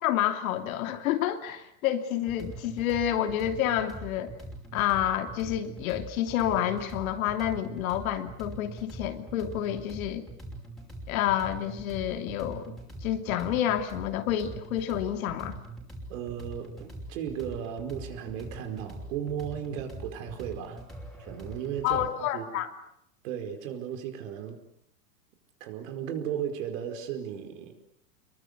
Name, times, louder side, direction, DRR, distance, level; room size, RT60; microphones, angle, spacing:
voice 1, 0.0-4.3 4.7-10.2 11.1-12.8 13.0-15.6 21.8-22.7, left 11 dB, 60° left, 7 dB, 3.0 m, -29 dB
sound 1, 2.2-22.1, right 1 dB, ahead, 5.6 m, -43 dB
voice 2, 16.1-20.8 21.2-22.1 22.3-22.6 23.2-24.6 25.6-27.7, right 9 dB, 55° right, 7 dB, 5.0 m, -35 dB
26.5 x 22.5 x 8.2 m, 0.73 s
supercardioid pair, 145°, 47 cm